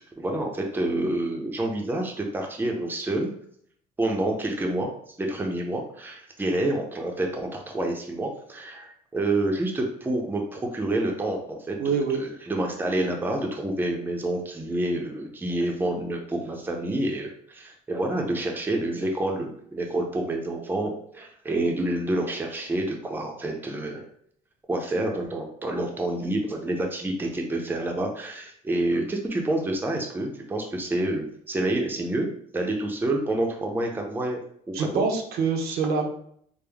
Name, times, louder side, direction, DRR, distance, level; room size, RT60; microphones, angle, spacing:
voice 1, 0.0-3.3 4.0-4.9 5.2-24.0 24.7-32.3 32.5-34.4 34.7-35.0, right 1 dB, 10° right, 1 dB, 0.6 m, -28 dB
voice 2, 11.8-12.2 34.7-36.1, right 5 dB, 70° right, 3 dB, 0.7 m, -25 dB
3.6 x 2.1 x 3.4 m, 0.65 s
cardioid pair, 110°, 17 cm